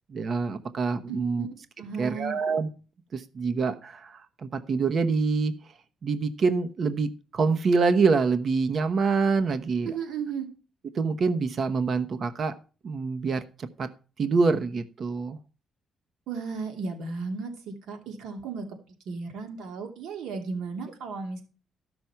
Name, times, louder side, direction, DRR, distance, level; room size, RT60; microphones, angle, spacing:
voice 1, 0.1-1.5 2.0-2.7 3.1-5.5 6.0-9.9 10.9-12.5 12.8-13.9 14.2-15.4, right 4 dB, 50° right, 9 dB, 1.0 m, -26 dB
voice 2, 1.1-1.5 1.8-2.4 9.8-10.5 16.3-18.8 19.1-21.4, right 5 dB, 85° right, 4 dB, 2.7 m, -34 dB
13.5 x 6.2 x 5.8 m, 0.36 s
cardioid pair, 90°, 0 cm